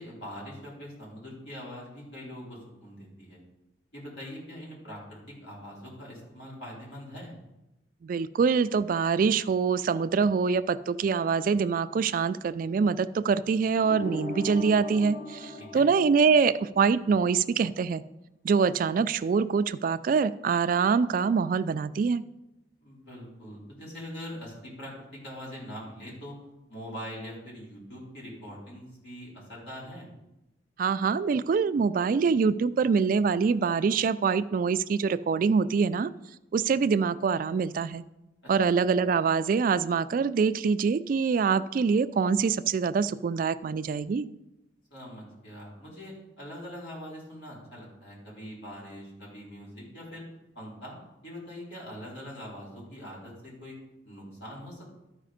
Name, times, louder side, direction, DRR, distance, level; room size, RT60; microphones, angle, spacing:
voice 1, 0.0-3.4 3.9-7.3 15.6-15.9 22.8-26.3 26.7-30.1 38.4-38.5 44.9-50.3 50.6-51.0 51.2-53.8 54.0-55.0, equal, 70° left, -5 dB, 4.0 m, -43 dB
voice 2, 8.0-18.0 18.4-22.2 30.8-36.1 36.5-38.0 38.5-44.3, right 5 dB, 50° right, 15 dB, 0.3 m, -25 dB
sound 1, 13.8-16.8, left 2 dB, 35° left, 1.0 m, -39 dB
12.5 x 4.9 x 5.0 m, 0.93 s
head